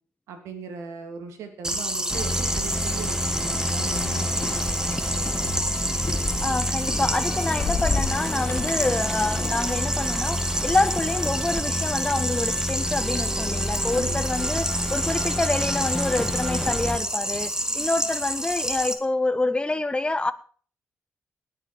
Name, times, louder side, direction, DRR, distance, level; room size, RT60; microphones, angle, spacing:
voice 1, 0.3-5.5 13.9-14.2, right 5 dB, 85° right, 3.0 m, -39 dB
sound 1, 1.6-18.9, right 1 dB, 15° right, 2.2 m, -29 dB
sound 2, 2.1-17.0, equal, 5° left, 2.4 m, -30 dB
sound 3, 3.9-9.6, left 4 dB, 50° left, 2.3 m, -33 dB
voice 2, 6.4-20.3, left 2 dB, 20° left, 1.4 m, -27 dB
19.5 x 8.4 x 4.8 m
supercardioid pair, 60°, 5 cm